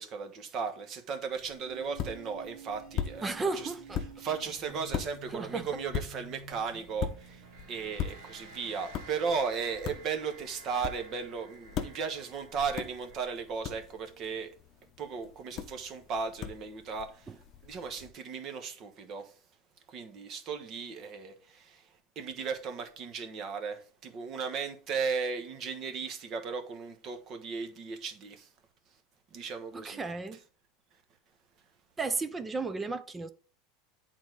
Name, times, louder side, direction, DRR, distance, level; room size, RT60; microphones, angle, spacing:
voice 1, 0.0-3.7 4.2-14.5 15.0-17.3 17.6-19.4 19.9-28.5 29.3-30.0, right 5 dB, 35° right, 1.2 m, -36 dB
sound 1, 1.3-18.1, left 8 dB, 35° left, 0.9 m, -41 dB
sound 2, 1.6-13.2, right 4 dB, 60° right, 2.7 m, -51 dB
voice 2, 3.2-4.0 5.3-5.7 17.3-17.4 29.7-30.4 32.0-33.3, right 3 dB, 15° right, 0.5 m, -34 dB
8.7 x 4.1 x 4.7 m
supercardioid pair, 150°, 0 cm